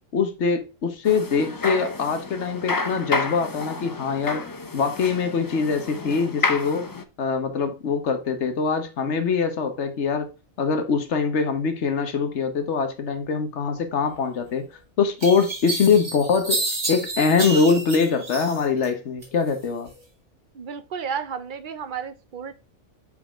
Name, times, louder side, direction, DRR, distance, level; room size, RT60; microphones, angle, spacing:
voice 1, 0.1-4.4 4.7-6.9 7.2-10.3 10.6-14.7 15.0-16.6 16.9-19.9, left 5 dB, 70° left, 1.4 m, -23 dB
sound 1, 1.0-7.0, left 3 dB, 35° left, 0.3 m, -30 dB
sound 2, 14.5-14.6 15.2-18.9 19.2-20.0, right 2 dB, 75° right, 2.9 m, -30 dB
voice 2, 20.5-22.5, right 7 dB, 50° right, 0.7 m, -32 dB
5.5 x 5.2 x 3.5 m
omnidirectional pair, 1.2 m